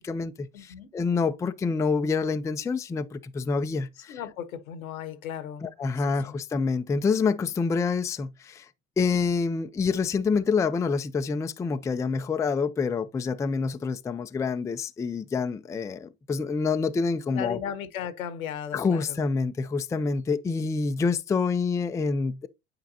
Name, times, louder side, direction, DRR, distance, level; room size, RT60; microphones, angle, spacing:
voice 1, 0.0-4.2 5.6-8.7 9.0-17.6 18.7-22.5, left 4 dB, 10° left, 0.3 m, -27 dB
voice 2, 0.5-0.9 4.1-5.7 6.0-6.3 17.3-19.2, left 9 dB, 90° left, 1.0 m, -36 dB
9.1 x 4.5 x 2.7 m
hypercardioid pair, 80°, 40 cm